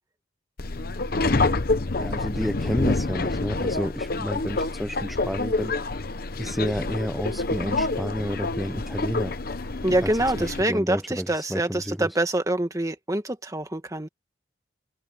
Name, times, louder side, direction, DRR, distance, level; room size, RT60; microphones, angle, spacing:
Subway metro underground, 0.6-10.6, left 3 dB, 50° left, 0.9 m, -27 dB
voice 1, 1.9-6.1 6.4-9.4 10.0-10.1 10.4-12.1, equal, ahead, 0.6 m, -30 dB
voice 2, 9.8-14.1, right 1 dB, 15° right, 1.7 m, -25 dB
head